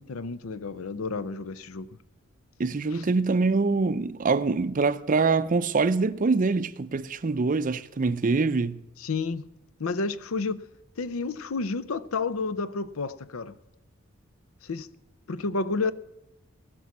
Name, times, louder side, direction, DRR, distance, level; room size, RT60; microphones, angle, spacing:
voice 1, 0.1-1.9 2.9-3.0 9.0-9.5 9.8-10.6 11.0-13.6 14.6-14.9 15.3-15.9, left 4 dB, 85° left, 0.6 m, -30 dB
voice 2, 2.6-8.8, right 4 dB, 40° right, 0.5 m, -24 dB
18.0 x 6.2 x 8.2 m
head